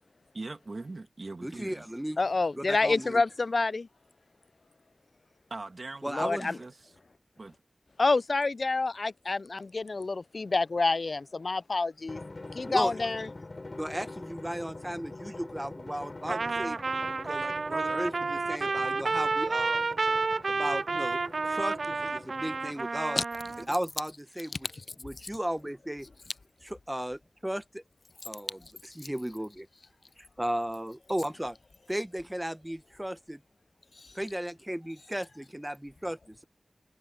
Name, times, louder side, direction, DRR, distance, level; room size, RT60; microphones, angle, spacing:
voice 1, 0.3-1.9 5.5-6.9 7.4-7.6, right 3 dB, 60° right, 1.9 m, -41 dB
voice 2, 1.4-2.2 2.6-3.2 6.0-6.5 12.7-12.9 13.8-16.8 17.2-19.9 20.5-21.2 21.5-23.2 23.7-24.5 25.0-26.1 26.6-27.8 28.3-28.6 29.0-29.7 30.2-31.6 31.9-33.4 34.1-36.4, equal, 10° right, 0.8 m, -35 dB
voice 3, 2.2-3.9 6.1-6.6 8.0-12.2 12.5-13.3 23.2-23.3 24.7-24.8 34.0-34.1, left 3 dB, 65° left, 0.3 m, -28 dB
Drum, 12.1-23.1, left 2 dB, 50° left, 3.5 m, -45 dB
Trumpet, 16.3-23.6, right 4 dB, 80° right, 0.3 m, -30 dB
wide cardioid pair, 70°, 0 cm